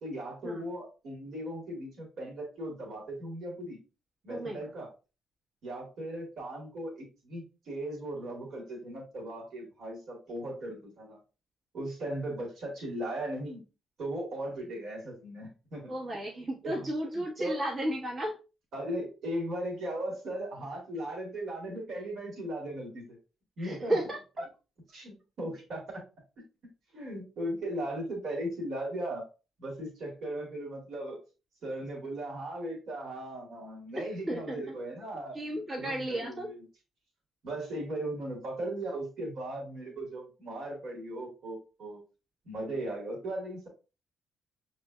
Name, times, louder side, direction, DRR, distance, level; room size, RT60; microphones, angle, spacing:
voice 1, 0.0-3.8 4.2-4.9 5.6-11.2 11.7-13.6 14.0-15.9 16.6-16.9 17.1-17.6 18.7-23.2 23.6-24.0 24.9-25.8 26.9-29.3 29.6-31.2 31.6-35.4 35.8-36.6 37.4-42.0 42.5-43.7, right 1 dB, 60° right, -1 dB, 2.0 m, -37 dB
voice 2, 4.3-4.6 15.9-18.4 23.6-24.4 33.9-34.6 35.3-36.5, right 1 dB, 40° right, -3 dB, 1.4 m, -34 dB
6.6 x 3.2 x 2.4 m, 0.31 s
hypercardioid pair, 45°, 0 cm